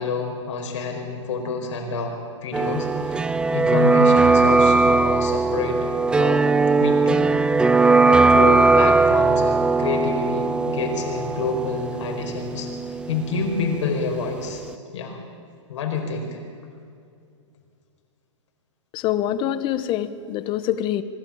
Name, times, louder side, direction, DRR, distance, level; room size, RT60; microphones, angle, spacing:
voice 1, 0.0-6.5 6.8-7.4 7.7-12.7 13.1-14.6 14.9-15.2 15.7-16.4, left 4 dB, 65° left, 2 dB, 4.9 m, -28 dB
sound 1, 2.5-14.3 14.5-14.6, right 3 dB, 5° right, 0.4 m, -19 dB
voice 2, 18.9-21.0, left 11 dB, 30° left, 14 dB, 1.0 m, -25 dB
24.5 x 12.0 x 8.7 m, 2.4 s
hypercardioid pair, 130°, 16 cm